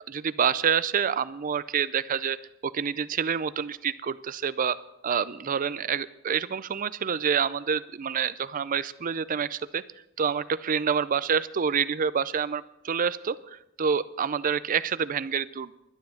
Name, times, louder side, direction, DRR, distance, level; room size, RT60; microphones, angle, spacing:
voice 1, 0.1-2.4 2.6-4.8 5.0-9.8 10.2-15.7, right 7 dB, 40° right, 16 dB, 0.4 m, -27 dB
11.5 x 10.5 x 7.0 m, 0.91 s
head